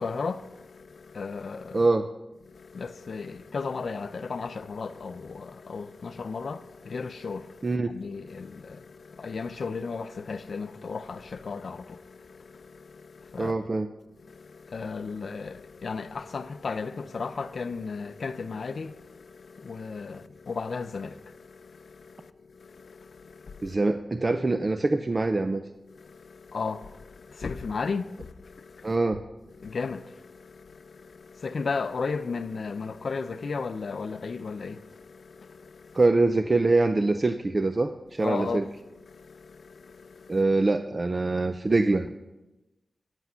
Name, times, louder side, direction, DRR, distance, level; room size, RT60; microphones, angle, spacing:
voice 1, 0.0-1.9 2.5-13.7 14.2-23.7 25.9-29.0 29.5-36.0 38.2-40.4, left 4 dB, 70° left, 0.5 m, -35 dB
voice 2, 1.7-2.1 7.6-7.9 13.4-13.9 23.6-25.6 28.8-29.2 35.9-38.6 40.3-42.1, right 3 dB, 35° right, 0.4 m, -24 dB
9.7 x 8.3 x 5.6 m
wide cardioid pair, 110°, 0 cm